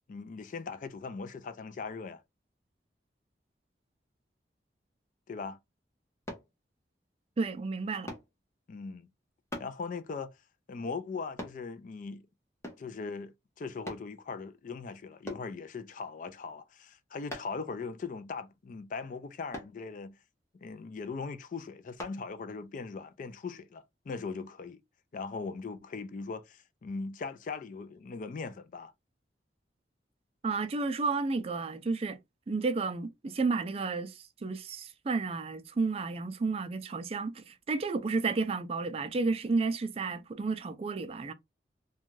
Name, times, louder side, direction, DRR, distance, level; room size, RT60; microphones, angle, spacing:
voice 1, 0.1-2.2 5.3-5.6 8.7-9.1 9.6-10.4 10.7-12.3 12.8-20.1 20.6-24.8 25.1-28.9, left 4 dB, 45° left, 0.3 m, -40 dB
sound 1, 6.3-6.5 8.1-8.3 9.5-9.8 11.4-11.6 12.6-12.9 13.9-14.1 15.3-15.5 17.3-17.6 19.5-19.8 22.0-22.2 22.8-22.9, left 1 dB, 15° left, 0.7 m, -41 dB
voice 2, 7.4-8.1 30.4-32.2 32.5-41.3, right 4 dB, 35° right, 0.3 m, -32 dB
2.5 x 2.2 x 3.0 m
head